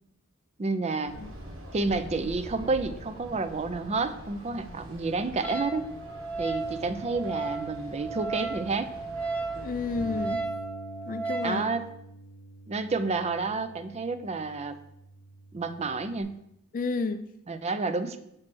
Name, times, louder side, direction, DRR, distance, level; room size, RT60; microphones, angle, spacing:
voice 1, 0.6-1.2 1.7-5.9 6.4-8.9 11.4-11.8 12.7-14.8 15.5-16.4 17.5-18.2, right 3 dB, 30° right, 9 dB, 0.5 m, -30 dB
sound 1, 1.0-10.4, equal, 85° right, 1.4 m, -44 dB
Wind instrument woodwind instrument, 5.4-11.6, right 3 dB, 5° left, 0.7 m, -34 dB
voice 2, 9.6-10.4 11.1-11.7 16.7-17.3, left 4 dB, 40° left, 9 dB, 0.4 m, -31 dB
Bass guitar, 10.0-16.2, equal, 80° left, 1.1 m, -46 dB
7.4 x 3.2 x 6.0 m, 0.80 s
head